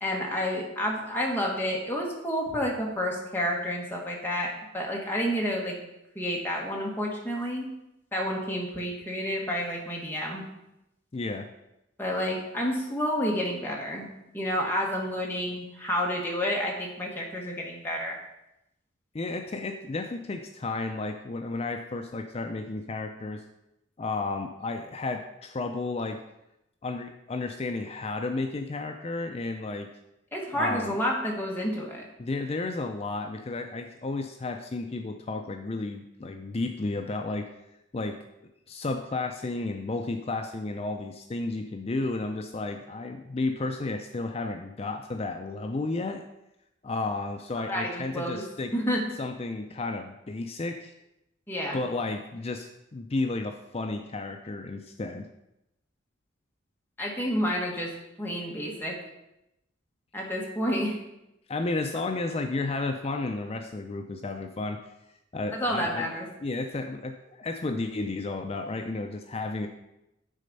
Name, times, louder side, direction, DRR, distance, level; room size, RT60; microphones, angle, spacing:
voice 1, 0.0-5.7 6.1-7.7 8.1-10.4 12.0-14.1 14.3-18.2 30.3-32.0 47.7-48.4 48.7-49.0 51.5-51.8 57.0-57.9 58.2-59.0 60.1-61.0 65.5-66.3, equal, 10° left, -2 dB, 1.5 m, -29 dB
voice 2, 11.1-11.5 19.1-23.4 24.0-26.2 26.8-29.9 30.5-31.0 32.2-37.5 37.9-38.2 38.7-46.2 46.8-48.7 49.2-50.9 51.7-55.3 61.5-64.8 65.3-66.0 66.4-69.7, left 3 dB, 30° left, 5 dB, 0.4 m, -32 dB
9.9 x 4.2 x 5.3 m, 0.88 s
head